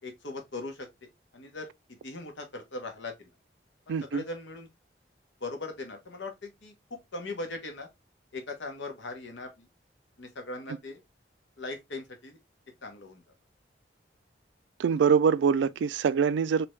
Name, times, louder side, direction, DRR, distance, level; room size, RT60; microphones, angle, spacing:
voice 1, 0.0-1.7 2.0-3.3 3.9-4.7 5.4-7.9 8.3-9.7 10.2-11.0 11.6-12.4 12.8-13.2, left 2 dB, 90° left, 1.1 m, -40 dB
voice 2, 3.9-4.2 14.8-16.7, right 6 dB, 80° right, 0.3 m, -24 dB
3.4 x 2.8 x 3.1 m
head